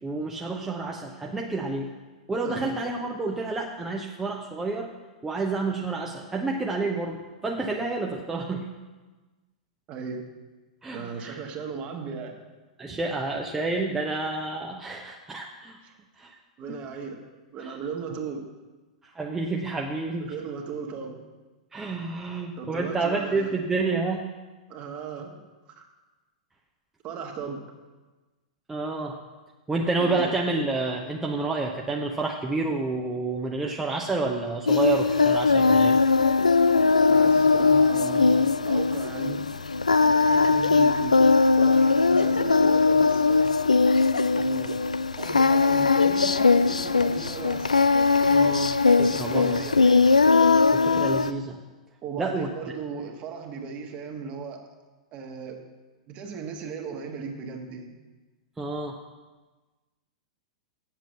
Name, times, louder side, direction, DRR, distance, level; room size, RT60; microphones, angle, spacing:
voice 1, 0.0-1.9 2.3-4.9 5.2-8.7 10.8-11.4 12.8-15.8 16.2-16.4 16.7-16.8 17.6-17.8 19.0-20.4 21.7-24.3 28.7-29.2 29.7-36.0 48.2-49.6 50.7-51.6 52.2-52.5 58.6-59.0, right 3 dB, 10° right, 0 dB, 0.8 m, -29 dB
voice 2, 2.4-2.8 9.9-10.2 10.9-12.4 15.8-15.9 16.6-17.2 17.5-18.4 20.2-21.2 22.6-23.6 24.7-25.4 25.7-25.9 27.0-27.6 30.0-30.3 37.1-39.5 40.0-41.2 41.6-43.5 44.3-44.8 45.2-47.7 49.0-50.1 52.0-54.6 55.1-55.6 56.1-58.0, right 5 dB, 35° right, 3 dB, 1.5 m, -36 dB
Singing, 34.7-51.3, left 4 dB, 85° left, 0.3 m, -20 dB
7.6 x 7.4 x 7.1 m, 1.2 s
figure-of-eight pair, 100°, 4 cm